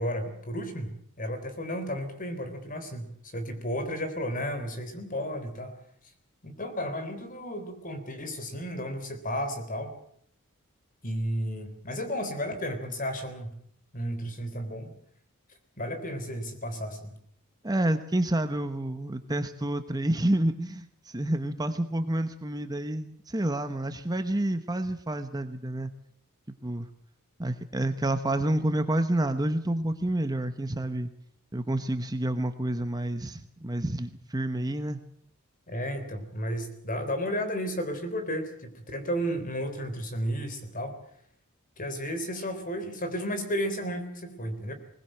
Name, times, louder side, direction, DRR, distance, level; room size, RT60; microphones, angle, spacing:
voice 1, 0.0-5.7 6.4-9.9 11.0-13.5 13.9-14.9 15.8-17.1 35.7-41.0 41.8-44.7, equal, 40° left, 8 dB, 3.7 m, -33 dB
voice 2, 17.6-25.9 26.6-26.9 27.4-31.1 31.5-35.0, right 1 dB, 15° right, 9 dB, 1.0 m, -29 dB
21.5 x 20.0 x 7.8 m, 0.66 s
head